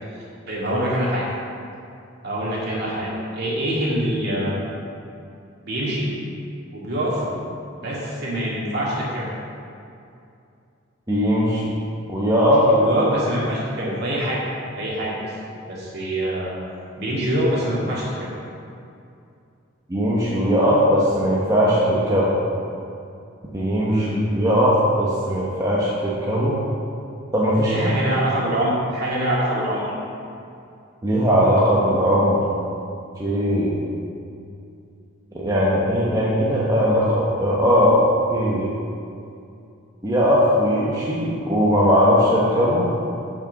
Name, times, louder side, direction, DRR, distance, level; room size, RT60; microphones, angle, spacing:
voice 1, 0.5-1.2 2.2-4.6 5.6-6.1 6.7-7.2 7.8-9.3 12.4-14.5 14.8-15.2 15.7-16.5 17.0-18.3 23.9-24.2 27.6-29.9, equal, 55° right, -6 dB, 2.2 m, -24 dB
voice 2, 11.1-11.7 12.1-12.7 19.9-22.3 23.5-24.0 24.3-26.6 27.3-27.9 31.0-32.4 33.2-33.8 35.3-38.0 38.3-38.7 40.0-42.9, equal, 20° right, -6 dB, 1.0 m, -19 dB
6.7 x 6.0 x 6.9 m, 2.5 s
head